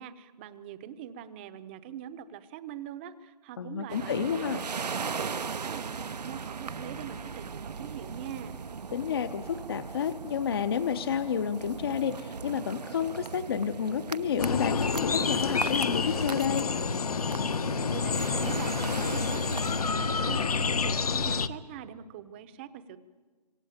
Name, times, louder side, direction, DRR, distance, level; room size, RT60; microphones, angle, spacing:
voice 1, 0.0-8.6 17.7-23.0, right 9 dB, 15° right, 13 dB, 0.9 m, -43 dB
voice 2, 3.6-4.6 8.9-16.7, left 8 dB, 35° left, 9 dB, 0.9 m, -30 dB
sound 1, 3.9-19.9, right 5 dB, 75° right, 0.9 m, -38 dB
sound 2, 14.4-21.5, left 5 dB, 65° left, 1.3 m, -28 dB
26.0 x 25.0 x 8.9 m, 1.4 s
hypercardioid pair, 160°, 21 cm